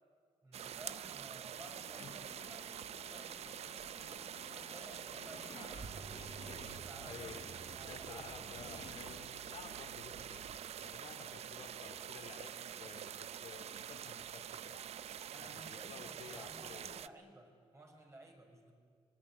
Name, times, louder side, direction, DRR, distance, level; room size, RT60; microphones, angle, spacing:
voice 1, 0.4-6.3 6.7-7.4 7.7-8.3 15.3-18.7, right 1 dB, 25° right, 2 dB, 5.5 m, -56 dB
sound 1, 0.5-17.1, right 9 dB, 80° right, 0.6 m, -46 dB
Singing, 1.5-9.3, left 8 dB, 70° left, 1.1 m, -56 dB
sound 2, 5.1-10.5, right 4 dB, 60° right, 1.8 m, -54 dB
voice 2, 7.0-7.4 7.9-14.8 15.4-17.0, left 6 dB, 90° left, 4 dB, 2.8 m, -53 dB
26.0 x 21.5 x 9.8 m, 2.1 s
cardioid pair, 95°, 11 cm